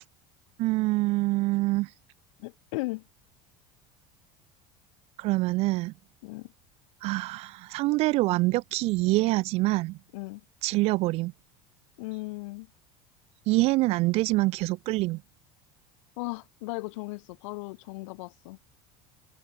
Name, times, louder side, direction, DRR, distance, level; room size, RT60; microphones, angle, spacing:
voice 1, 0.6-1.9 5.2-5.9 7.0-10.0 10.6-11.3 13.5-15.2, right 21 dB, 40° right, 0.5 m, -25 dB
voice 2, 2.4-3.0 6.2-6.5 10.1-10.4 12.0-12.7 16.2-18.6, left 24 dB, 75° left, 3.5 m, -36 dB
cardioid pair, 175°, 16 cm